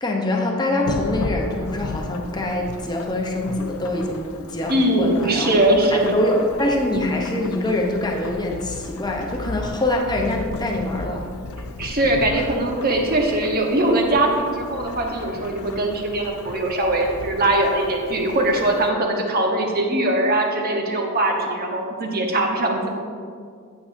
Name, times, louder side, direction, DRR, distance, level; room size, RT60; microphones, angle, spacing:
voice 1, 0.0-5.6 5.9-11.3 12.3-12.4, left 1 dB, 20° left, 1 dB, 0.7 m, -24 dB
Thunderstorm / Rain, 0.8-18.9, left 3 dB, 90° left, 0.5 m, -35 dB
voice 2, 4.4-6.2 11.8-22.9, right 1 dB, 45° right, 1 dB, 1.0 m, -21 dB
8.6 x 8.2 x 2.6 m, 2.2 s
head